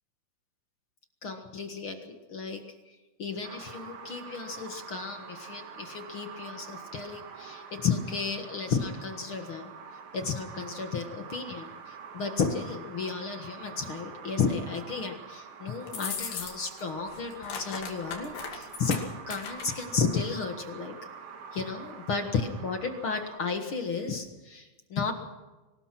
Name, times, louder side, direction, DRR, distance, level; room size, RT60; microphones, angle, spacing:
voice 1, 1.2-9.7 10.1-20.9 21.5-25.1, left 5 dB, 50° left, 5 dB, 1.7 m, -33 dB
sound 1, 3.4-23.4, right 6 dB, 55° right, 2.8 m, -46 dB
sound 2, 15.9-16.8 17.1-20.0, left 6 dB, 70° left, 4.1 m, -37 dB
24.0 x 19.0 x 6.1 m, 1.2 s
omnidirectional pair, 4.3 m